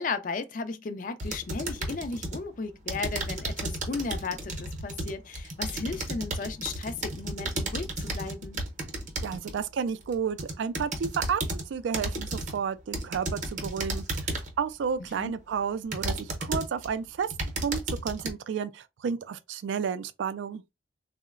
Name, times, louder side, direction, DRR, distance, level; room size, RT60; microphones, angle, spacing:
voice 1, 0.0-8.6 15.2-15.3, left 4 dB, 45° left, 0.4 m, -35 dB
sound 1, 1.2-2.4 2.9-9.6 10.1-11.6 11.9-12.6 12.9-14.6 15.2-15.3 15.9-16.9 17.2-18.3, right 2 dB, 40° right, 0.7 m, -33 dB
voice 2, 9.2-11.4 11.7-14.0 14.6-17.3 17.6-20.6, right 6 dB, 75° right, 0.3 m, -31 dB
3.7 x 2.0 x 2.3 m
head